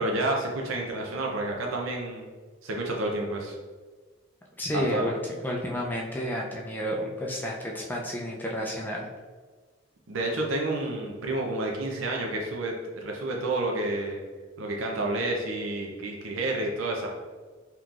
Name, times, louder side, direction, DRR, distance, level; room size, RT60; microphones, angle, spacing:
voice 1, 0.0-2.3 2.6-3.6 4.7-5.1 10.1-14.2 14.6-17.1, right 2 dB, 75° right, 0 dB, 0.6 m, -30 dB
voice 2, 4.6-9.1, equal, 10° left, -2 dB, 0.4 m, -31 dB
3.7 x 2.9 x 2.4 m, 1.4 s
head